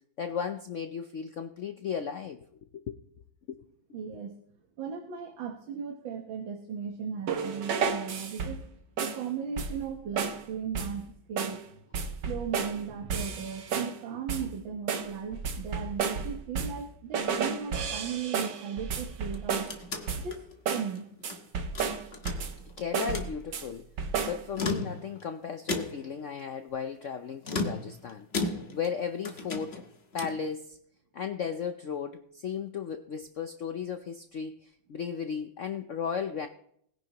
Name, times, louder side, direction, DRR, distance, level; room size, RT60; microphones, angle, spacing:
voice 1, 0.2-2.4 2.7-3.0 3.5-3.6 22.8-23.8 24.2-29.9 30.1-30.8 31.1-36.5, left 7 dB, 75° left, 8 dB, 0.7 m, -35 dB
voice 2, 3.9-4.3 4.8-8.7 9.0-11.6 12.3-19.7 20.2-20.4 20.7-21.0 21.7-22.0, right 7 dB, 80° right, 4 dB, 1.9 m, -37 dB
sound 1, 7.3-8.7 9.0-9.3 9.6-9.9 10.2-10.4 10.8-11.0 11.4-11.6 11.9-12.8 13.1-14.0 14.3-14.6 14.9-16.9 17.1-19.8 20.1-20.4 20.7-20.9 21.2-22.6 22.9-23.7 24.0-24.4, right 5 dB, 65° right, 1.6 m, -32 dB
sound 2, 19.2-21.4 21.7-22.7 23.0-23.4 24.4-25.2 25.7-26.2 27.4-29.0 29.2-30.5, left 3 dB, 35° left, 1.4 m, -35 dB
20.5 x 10.0 x 2.9 m, 0.67 s
omnidirectional pair, 2.1 m